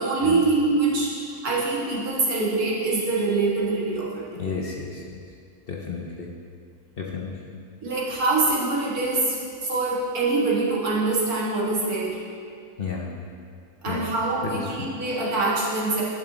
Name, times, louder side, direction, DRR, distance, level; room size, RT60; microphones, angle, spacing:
voice 1, 0.0-4.2 7.8-12.2 13.8-16.0, right 3 dB, 80° right, -5 dB, 2.1 m, -24 dB
voice 2, 4.3-5.0 5.7-6.3 7.0-7.6 12.8-13.1 13.9-14.1 14.4-14.9, left 5 dB, 50° left, -1 dB, 0.7 m, -32 dB
11.0 x 6.2 x 3.9 m, 2.3 s
omnidirectional pair, 1.6 m